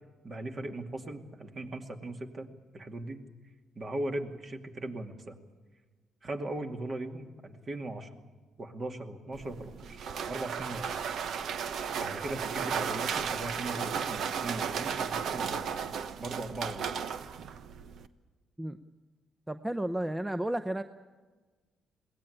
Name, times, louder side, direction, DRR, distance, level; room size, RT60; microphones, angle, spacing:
voice 1, 0.2-3.2 3.7-5.4 6.2-8.1 8.6-11.0 12.0-15.8 16.2-16.9, right 1 dB, 40° right, 5 dB, 2.4 m, -39 dB
sound 1, 9.3-18.1, right 7 dB, 70° right, 1.0 m, -35 dB
voice 2, 19.5-20.8, right 1 dB, 10° right, 10 dB, 0.7 m, -32 dB
21.5 x 17.0 x 10.0 m, 1.3 s
cardioid pair, 90°, 0 cm